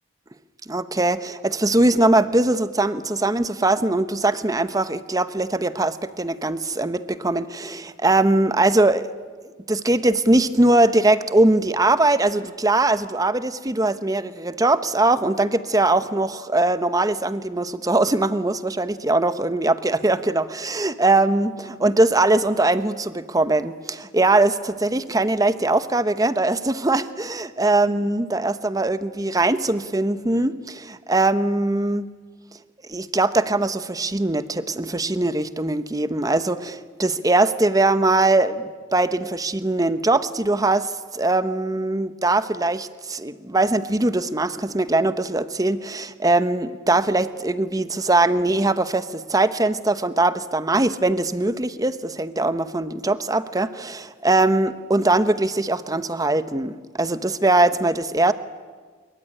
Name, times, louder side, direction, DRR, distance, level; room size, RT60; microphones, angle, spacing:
voice 1, 0.7-9.1 9.7-32.1 32.9-58.3, right 2 dB, 20° right, 12 dB, 1.0 m, -21 dB
25.5 x 23.0 x 9.9 m, 1.5 s
head